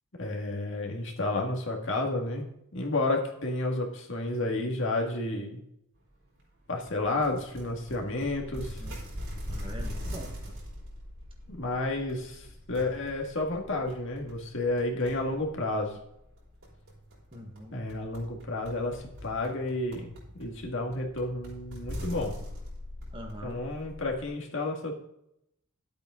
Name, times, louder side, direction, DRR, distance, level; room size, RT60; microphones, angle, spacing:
voice 1, 0.2-2.5 2.7-5.6 6.7-8.8 11.5-16.0 17.7-20.1 20.4-22.3 23.4-24.9, left 2 dB, 55° left, 0 dB, 2.0 m, -31 dB
sound 1, 6.9-24.3, equal, 70° right, 4.6 m, -42 dB
voice 2, 8.5-9.0 9.5-10.4 17.3-17.7 23.1-23.6, equal, 25° right, 1 dB, 1.5 m, -43 dB
12.0 x 8.3 x 3.9 m, 0.78 s
head